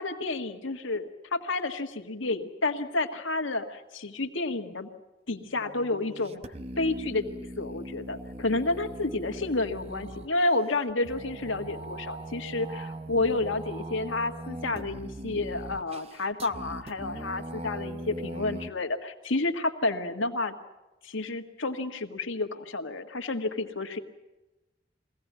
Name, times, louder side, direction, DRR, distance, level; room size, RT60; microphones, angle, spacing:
voice 1, 0.0-4.9 5.3-6.4 6.8-20.5 21.0-24.0, left 2 dB, 85° left, 5 dB, 1.7 m, -30 dB
sound 1, 5.4-18.7, right 1 dB, 30° right, 0.7 m, -41 dB
22.5 x 16.5 x 9.4 m, 1.0 s
head